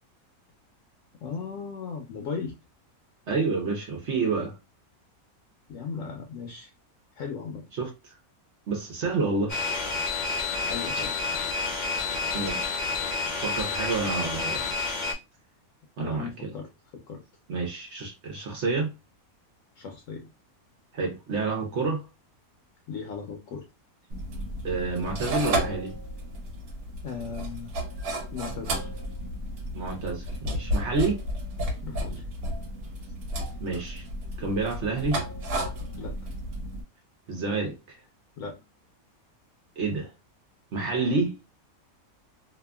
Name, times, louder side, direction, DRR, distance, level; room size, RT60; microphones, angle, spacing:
voice 1, 1.2-2.6 5.7-6.7 7.2-7.7 10.6-11.1 16.0-17.2 19.8-20.3 22.9-23.6 27.0-27.7 28.3-28.9 31.8-32.3 36.0-36.3 38.4-38.6, left 5 dB, 70° left, 0.9 m, -37 dB
voice 2, 3.3-4.5 7.7-8.1 8.7-9.6 10.9-11.0 12.3-12.8 13.4-14.7 16.0-16.5 17.5-18.9 20.9-22.0 24.6-26.0 29.7-31.2 33.6-34.1 34.4-35.2 37.3-38.0 39.8-40.1 40.7-41.4, right 3 dB, 60° right, 0.9 m, -29 dB
sound 1, 9.5-15.1, left 4 dB, 45° left, 0.7 m, -29 dB
sound 2, 24.1-36.8, equal, 85° right, 1.3 m, -33 dB
2.8 x 2.4 x 2.2 m
omnidirectional pair, 1.5 m